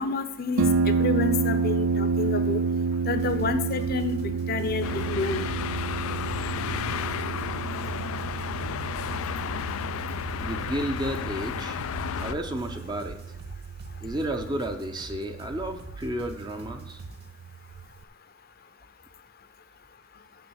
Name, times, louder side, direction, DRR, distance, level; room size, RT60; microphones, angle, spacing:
voice 1, 0.0-2.6 3.1-5.5, left 4 dB, 45° left, 10 dB, 0.7 m, -29 dB
Harp, 0.6-18.0, right 4 dB, 65° right, 0.4 m, -30 dB
sound 1, 3.2-17.3, equal, 50° right, 1.6 m, -47 dB
sound 2, 4.8-12.3, left 8 dB, 80° left, 0.4 m, -32 dB
voice 2, 10.4-11.8 12.2-13.2 14.0-17.0, right 1 dB, 20° right, 5 dB, 0.6 m, -32 dB
7.1 x 7.0 x 7.1 m, 0.83 s
head